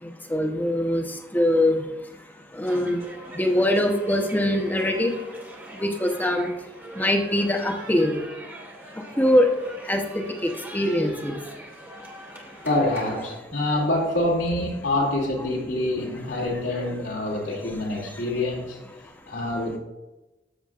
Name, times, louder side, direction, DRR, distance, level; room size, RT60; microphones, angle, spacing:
voice 1, 0.3-1.0 1.3-1.8 2.6-3.0 3.3-5.1 5.8-6.5 7.0-8.2 9.2-9.5 9.9-11.4, left 1 dB, 10° left, 3 dB, 0.9 m, -22 dB
sound 1, 2.6-13.4, right 1 dB, 15° right, 1.8 m, -43 dB
voice 2, 12.6-18.8 19.3-19.8, left 1 dB, 80° left, -3 dB, 2.7 m, -26 dB
13.5 x 7.1 x 2.5 m, 1.0 s
head